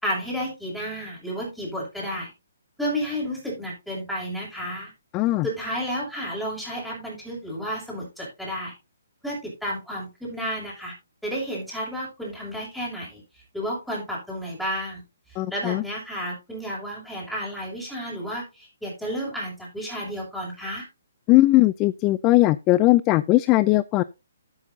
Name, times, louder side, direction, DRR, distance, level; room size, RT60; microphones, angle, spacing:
voice 1, 0.0-2.3 2.8-4.9 5.4-8.7 9.2-10.9 11.2-13.2 13.5-15.0 15.5-20.9, equal, ahead, 6.7 m, -31 dB
voice 2, 5.1-5.5 15.4-15.8 21.3-24.0, left 18 dB, 25° left, 0.4 m, -19 dB
13.0 x 8.8 x 2.8 m
hypercardioid pair, 145°, 0 cm